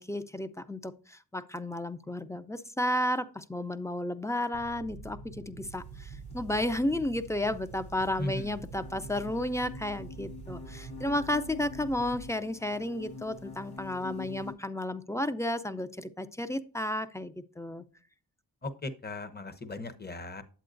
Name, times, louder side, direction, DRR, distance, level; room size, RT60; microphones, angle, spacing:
voice 1, 0.0-17.8, left 1 dB, 5° left, 12 dB, 0.5 m, -32 dB
sound 1, 4.5-12.3, right 4 dB, 85° right, 0.7 m, -46 dB
sound 2, 5.6-14.5, left 4 dB, 75° left, 1.8 m, -47 dB
voice 2, 8.2-8.6 18.6-20.4, left 2 dB, 25° left, 12 dB, 0.9 m, -37 dB
8.3 x 7.9 x 2.6 m, 0.38 s
cardioid pair, 50°, 40 cm